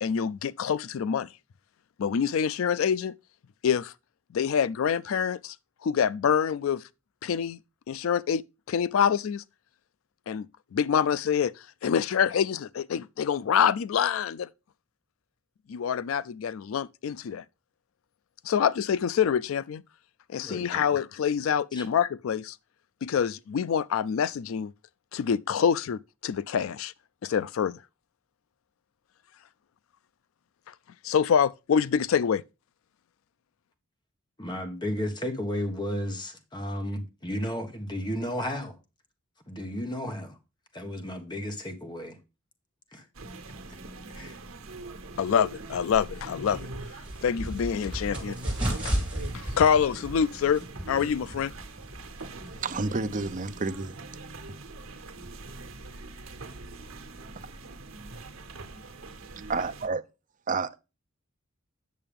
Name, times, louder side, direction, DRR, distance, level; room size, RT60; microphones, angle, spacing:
voice 1, 0.0-1.3 2.0-3.1 3.6-3.9 4.3-5.5 5.8-6.8 7.2-7.6 7.9-8.4 8.7-9.4 10.3-10.5 10.7-11.5 11.8-14.5 15.7-17.4 18.4-19.8 20.3-22.6 23.0-24.7 25.1-26.9 27.2-27.8 31.0-32.4 45.2-46.7 47.2-48.4 48.8-48.9 49.3-50.6 50.9-51.5, left 7 dB, 70° left, 0.4 m, -26 dB
voice 2, 20.4-20.9 21.7-21.8 34.4-38.7 39.5-40.4 40.7-42.2 42.9-43.0 44.1-44.4, equal, 20° left, 1.3 m, -33 dB
sound 1, 43.1-59.9, right 2 dB, 80° right, 1.2 m, -43 dB
sound 2, 46.5-52.7, right 1 dB, 5° right, 3.2 m, -34 dB
voice 3, 52.6-54.0 59.5-60.0 60.5-60.8, right 4 dB, 40° right, 0.6 m, -29 dB
8.6 x 6.7 x 3.5 m
head